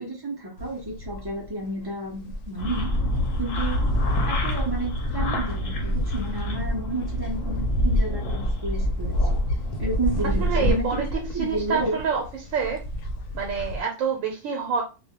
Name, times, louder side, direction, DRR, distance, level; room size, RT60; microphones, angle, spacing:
voice 1, 0.0-2.9 3.4-3.9 4.2-9.2 9.8-12.0, right 2 dB, 40° right, -1 dB, 0.3 m, -31 dB
sound 1, 0.6-13.8, equal, 85° left, 1.0 m, -32 dB
sound 2, 2.6-10.7, equal, 60° left, 0.8 m, -27 dB
voice 2, 10.4-12.8 13.3-14.8, right 6 dB, 85° right, 2 dB, 1.0 m, -27 dB
2.3 x 2.1 x 2.8 m, 0.30 s
omnidirectional pair, 1.3 m